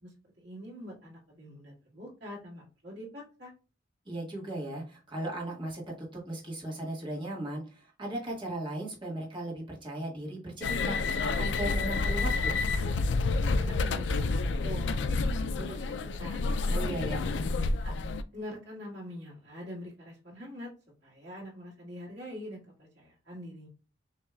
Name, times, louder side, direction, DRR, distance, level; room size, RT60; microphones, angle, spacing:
voice 1, 0.0-3.5 13.6-17.4 17.8-20.7 21.0-23.7, equal, 70° right, -4 dB, 2.2 m, -44 dB
voice 2, 4.0-12.5 16.7-17.2, right 1 dB, 25° right, -3 dB, 1.6 m, -37 dB
sound 1, 10.6-18.2, left 3 dB, 75° left, 0.4 m, -29 dB
6.6 x 3.2 x 2.3 m, 0.34 s
head